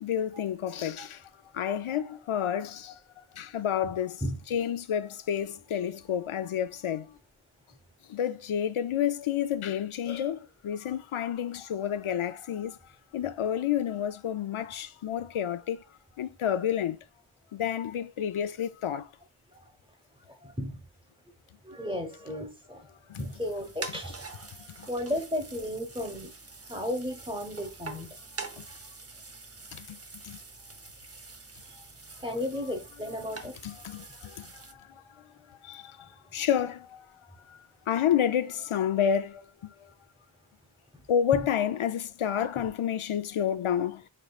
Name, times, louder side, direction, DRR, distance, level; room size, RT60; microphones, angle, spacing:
voice 1, 0.0-3.0 3.3-4.2 4.5-7.2 8.1-12.8 13.1-15.8 16.2-17.0 17.5-19.1 23.1-23.3 24.8-24.9 28.6-28.7 29.7-30.0 30.2-30.4 33.6-35.1 35.6-37.0 37.5-37.6 37.9-39.9 41.1-44.0, left 9 dB, 80° left, 0.5 m, -30 dB
voice 2, 20.3-20.8 21.6-22.9 23.2-24.3 24.9-26.3 26.7-28.2 31.6-31.8 32.2-33.5 40.9-41.0 41.3-41.5, left 1 dB, 10° right, 1.1 m, -34 dB
sound 1, 23.1-34.7, right 3 dB, 30° right, 0.7 m, -45 dB
6.6 x 3.0 x 2.3 m
wide cardioid pair, 50°, 49 cm